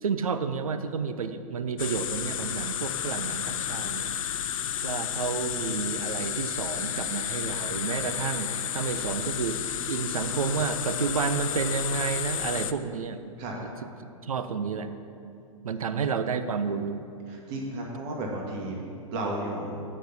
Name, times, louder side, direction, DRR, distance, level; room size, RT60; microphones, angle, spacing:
voice 1, 0.0-4.1 4.8-9.6 9.9-13.2 13.6-13.7 14.2-14.9 15.6-17.0, right 5 dB, 85° right, 10 dB, 0.6 m, -30 dB
sound 1, 1.8-12.7, left 9 dB, 70° left, 0.5 m, -32 dB
voice 2, 17.3-18.7 19.1-19.8, right 1 dB, 45° right, -1 dB, 1.7 m, -33 dB
8.1 x 6.1 x 6.9 m, 2.5 s
hypercardioid pair, 105°, 18 cm